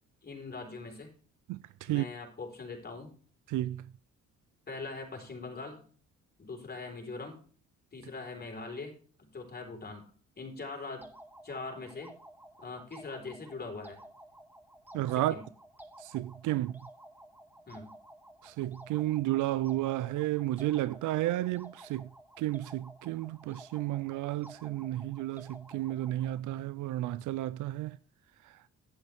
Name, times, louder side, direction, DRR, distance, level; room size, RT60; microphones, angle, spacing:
voice 1, 0.2-1.1 1.8-3.1 4.7-5.8 6.4-7.4 7.9-10.1 10.4-11.1 11.4-12.1 12.6-14.0 15.1-15.4 17.7-17.9, left 3 dB, 30° left, 4.2 m, -42 dB
voice 2, 1.5-2.0 3.5-3.9 14.9-15.3 16.0-16.8 18.4-22.1 22.4-28.0 28.4-28.6, right 15 dB, 80° right, 0.5 m, -32 dB
sound 1, 11.0-26.4, right 1 dB, 5° right, 1.9 m, -53 dB
12.0 x 11.0 x 3.5 m
cardioid pair, 90°, 30 cm